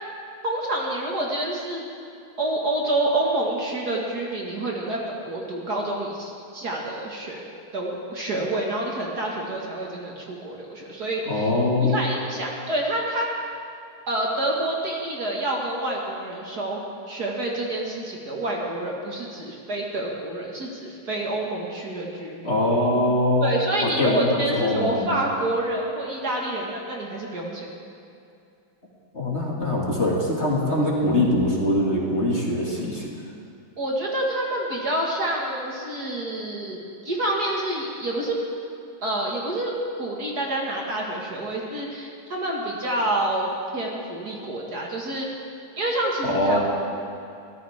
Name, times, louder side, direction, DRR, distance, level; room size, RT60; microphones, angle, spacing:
voice 1, 0.4-1.9 2.4-11.5 11.8-13.3 14.1-16.8 17.1-22.5 23.4-27.7 30.8-31.3 33.8-36.8 37.0-38.4 39.0-39.7 40.0-45.3 45.8-46.6, right 1 dB, 50° right, -2 dB, 2.4 m, -28 dB
voice 2, 11.3-12.0 22.4-23.5 24.0-25.1 29.1-33.1 46.2-46.6, left 1 dB, 30° left, -4 dB, 2.6 m, -22 dB
23.5 x 16.5 x 3.7 m, 2.5 s
omnidirectional pair, 2.3 m